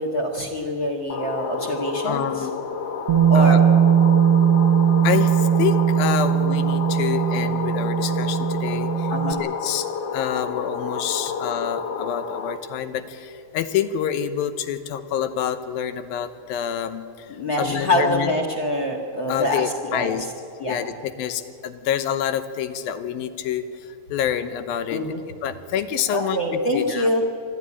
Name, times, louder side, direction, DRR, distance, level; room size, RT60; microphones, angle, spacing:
voice 1, 0.0-2.5 3.3-3.6 9.1-9.4 17.3-20.3 20.6-20.8 24.9-25.2 26.1-27.2, left 1 dB, 40° left, 3 dB, 2.0 m, -25 dB
sound 1, 1.1-12.6, left 5 dB, 60° left, 1.8 m, -30 dB
voice 2, 2.1-2.5 3.3-3.6 5.0-9.1 9.4-18.3 19.3-20.3 20.6-27.2, left 9 dB, 80° left, 10 dB, 2.8 m, -27 dB
Bass guitar, 3.1-9.3, right 8 dB, 70° right, 1.4 m, -19 dB
26.0 x 12.5 x 9.9 m, 2.5 s
omnidirectional pair, 4.2 m